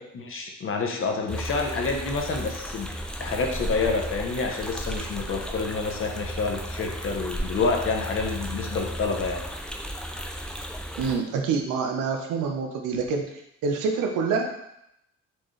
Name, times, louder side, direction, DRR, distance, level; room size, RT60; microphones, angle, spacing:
voice 1, 0.1-2.9 3.2-9.4, left 4 dB, 45° left, 2 dB, 0.7 m, -28 dB
sound 1, 1.3-11.1, equal, 5° left, 0.4 m, -34 dB
voice 2, 11.0-13.2 13.6-14.5, right 5 dB, 90° right, 3 dB, 0.6 m, -26 dB
4.4 x 2.4 x 3.1 m, 0.80 s
cardioid pair, 90°, 30 cm